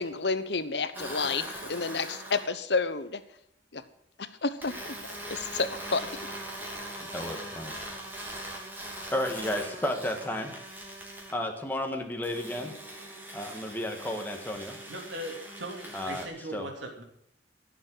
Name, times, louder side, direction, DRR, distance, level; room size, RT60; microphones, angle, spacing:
voice 1, 0.0-3.2 3.7-3.8 4.2-4.9 5.3-6.1, left 4 dB, 65° left, 12 dB, 1.1 m, -30 dB
sound 1, 0.9-2.5 4.6-11.4 12.2-16.3, right 1 dB, 10° right, 2.9 m, -41 dB
voice 2, 7.1-7.7 9.1-10.7 11.3-12.7 13.3-14.8 15.9-16.3 16.5-16.7, left 1 dB, 10° left, 3 dB, 1.6 m, -32 dB
voice 3, 14.9-17.0, right 1 dB, 80° right, 2 dB, 3.4 m, -39 dB
15.5 x 7.4 x 8.1 m, 0.70 s
head